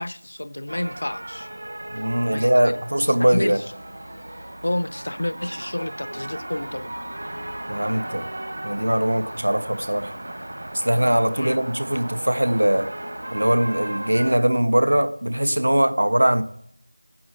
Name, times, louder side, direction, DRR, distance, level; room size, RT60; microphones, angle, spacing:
voice 1, 0.0-1.5 2.3-2.7 3.3-3.6 4.6-6.9 11.4-11.6, left 1 dB, 50° left, 0.4 m, -29 dB
sound 1, 0.7-14.4, right 1 dB, 50° right, 1.3 m, -36 dB
voice 2, 1.9-3.6 7.7-8.3 8.6-10.2 10.7-12.9 13.3-16.4, right 1 dB, 70° right, 1.0 m, -21 dB
8.5 x 6.7 x 7.7 m
figure-of-eight pair, 175°, 0 cm